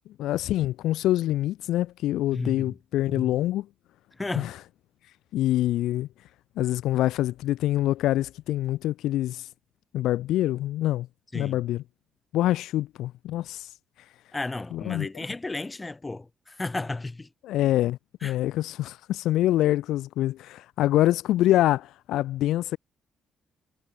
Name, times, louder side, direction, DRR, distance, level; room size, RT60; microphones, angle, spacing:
voice 1, 0.2-3.7 4.3-4.5 5.3-6.1 6.6-9.5 9.9-11.1 11.3-11.8 12.3-13.7 14.7-15.1 17.4-22.8, left 14 dB, 85° left, 1.4 m, -25 dB
voice 2, 2.3-2.7 3.1-3.4 4.1-4.5 11.3-11.6 14.3-17.3 18.2-18.3, left 2 dB, 20° left, 6.4 m, -33 dB
cardioid pair, 90°, 0 cm